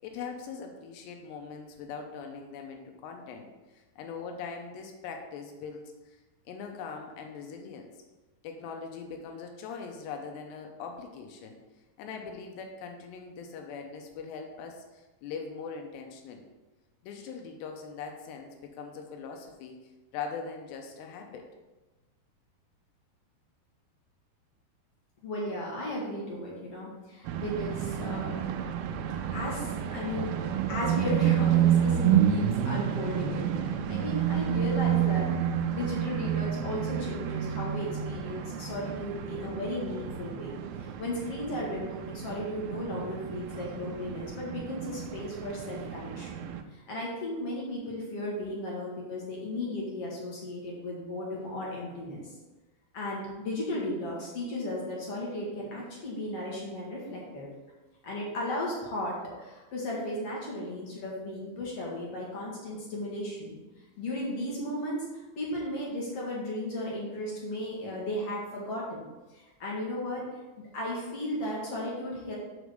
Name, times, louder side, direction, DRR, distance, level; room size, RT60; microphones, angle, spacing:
voice 1, 0.0-6.2 6.5-7.9 8.4-11.6 12.0-16.5 17.0-19.8 20.1-21.5, left 5 dB, 85° left, 3 dB, 2.9 m, -41 dB
voice 2, 25.2-28.4 29.3-30.4 30.7-46.4 46.7-52.3 52.9-57.5 58.0-63.6 64.0-65.1 65.4-69.0 69.3-70.4 70.7-72.3, left 1 dB, 50° left, -4 dB, 2.1 m, -35 dB
sound 1, 27.3-46.6, right 9 dB, 85° right, 2.2 m, -30 dB
6.1 x 5.1 x 6.4 m, 1.1 s
omnidirectional pair, 5.0 m